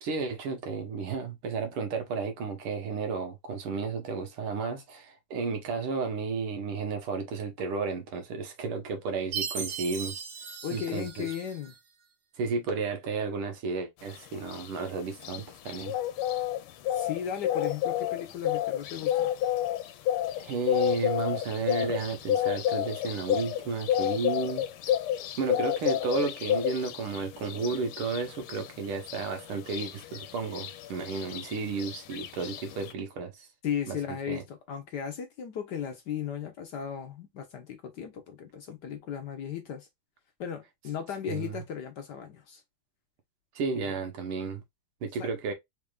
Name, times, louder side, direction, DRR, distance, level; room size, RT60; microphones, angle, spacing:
voice 1, 0.0-10.3 10.7-11.3 12.4-16.0 20.4-24.6 25.4-33.5 33.9-34.4 41.3-41.6 43.6-44.6 45.0-45.5, right 4 dB, 80° right, 2.0 m, -33 dB
Chime, 9.3-11.8, right 7 dB, 60° right, 1.4 m, -37 dB
voice 2, 10.6-11.7 16.9-19.3 33.6-39.9 40.4-42.6 43.8-43.9 45.2-45.3, left 8 dB, 65° left, 1.1 m, -36 dB
sound 1, 14.1-32.9, left 11 dB, 80° left, 1.5 m, -31 dB
4.3 x 3.4 x 2.3 m
omnidirectional pair, 2.4 m